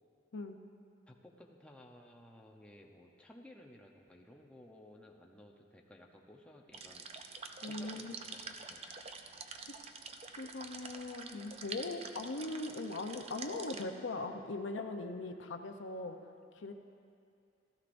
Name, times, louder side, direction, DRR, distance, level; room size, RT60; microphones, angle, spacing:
voice 1, 1.1-7.1 7.7-8.8, left 1 dB, 5° left, 0 dB, 0.7 m, -57 dB
sound 1, 6.7-13.8, right 4 dB, 35° right, 0.5 m, -47 dB
voice 2, 7.6-8.2 8.9-9.0 10.4-16.2 16.5-16.7, left 2 dB, 85° left, 6 dB, 0.7 m, -40 dB
16.0 x 13.0 x 2.6 m, 2.5 s
head